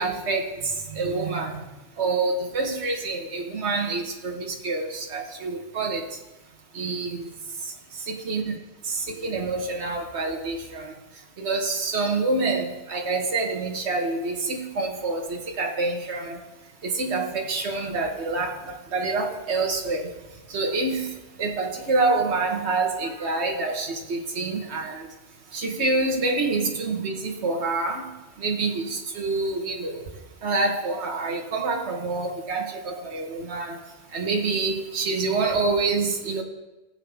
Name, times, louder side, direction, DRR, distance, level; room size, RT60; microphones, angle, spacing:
voice 1, 0.0-1.6 2.0-6.1 6.7-7.3 8.1-8.6 8.9-10.9 11.4-16.4 16.8-20.1 20.5-21.1 21.4-25.1 25.5-28.1 28.4-30.0 30.4-33.8 34.1-36.4, right 3 dB, 65° right, 1 dB, 1.6 m, -27 dB
18.5 x 7.7 x 3.5 m, 1.0 s
omnidirectional pair, 1.2 m